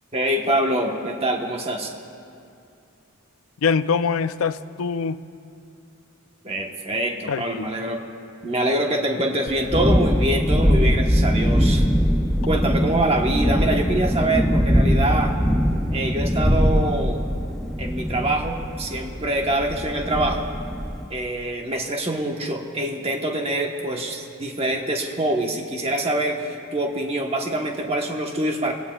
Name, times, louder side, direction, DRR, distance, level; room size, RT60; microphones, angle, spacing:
voice 1, 0.1-1.9 6.4-8.0 8.4-11.9 12.4-15.3 15.9-17.2 17.8-20.5 21.1-28.7, right 1 dB, 25° right, 1 dB, 1.2 m, -25 dB
voice 2, 3.6-5.2 7.3-7.7, left 5 dB, 70° left, 13 dB, 0.4 m, -23 dB
Thunderstorm, 9.5-21.0, equal, ahead, 0.5 m, -21 dB
23.5 x 17.0 x 2.4 m, 2.5 s
head